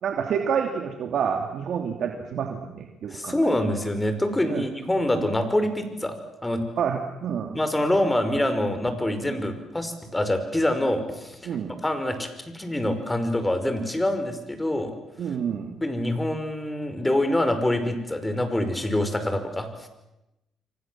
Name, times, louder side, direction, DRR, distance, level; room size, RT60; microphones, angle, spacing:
voice 1, 0.0-3.3 4.5-4.6 5.1-5.3 6.8-7.6 9.3-9.4 11.4-11.7 15.2-15.8, right 7 dB, 65° right, 4 dB, 2.9 m, -28 dB
voice 2, 3.1-6.2 6.4-6.6 7.5-11.6 11.8-14.9 15.8-19.9, left 1 dB, 15° left, 8 dB, 5.3 m, -25 dB
28.5 x 25.0 x 7.7 m, 0.92 s
cardioid pair, 90°, 0 cm